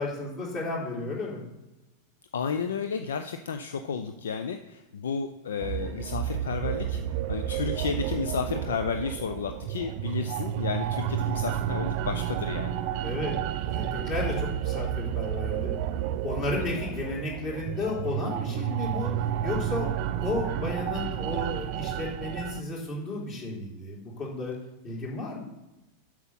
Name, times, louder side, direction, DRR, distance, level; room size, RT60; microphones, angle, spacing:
voice 1, 0.0-1.4 13.0-13.3 13.7-15.8 16.2-19.1 19.4-19.9 20.2-24.5 24.8-25.4, left 2 dB, 35° left, -3 dB, 3.5 m, -33 dB
voice 2, 2.3-7.0 7.3-12.8 16.5-16.7, left 6 dB, 65° left, 7 dB, 0.5 m, -32 dB
sound 1, 5.6-22.6, right 10 dB, 45° right, 0.5 m, -31 dB
8.0 x 6.2 x 5.7 m, 1.0 s
figure-of-eight pair, 90°, 0 cm